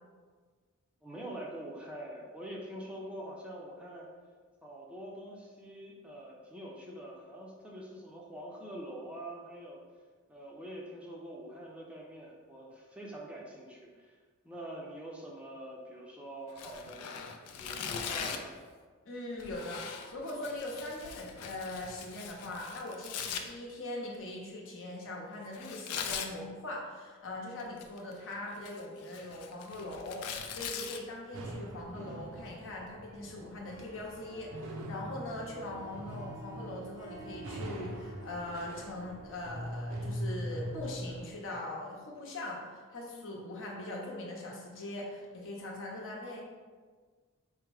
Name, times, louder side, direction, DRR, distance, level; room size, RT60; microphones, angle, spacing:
voice 1, 1.0-4.1 4.6-9.8 10.3-14.2 14.4-17.1 17.6-18.5, right 1 dB, 5° right, -3 dB, 0.5 m, -45 dB
Tearing, 16.5-18.6 19.4-23.4 25.5-26.3 27.6-28.1 28.5-31.0, left 7 dB, 90° left, 0.4 m, -41 dB
voice 2, 19.0-46.4, left 1 dB, 60° left, -2 dB, 0.9 m, -41 dB
sound 1, 31.3-41.3, equal, 65° right, 0.5 m, -42 dB
Harp, 33.5-42.1, right 3 dB, 20° left, 0.9 m, -53 dB
4.6 x 2.1 x 4.6 m, 1.5 s
head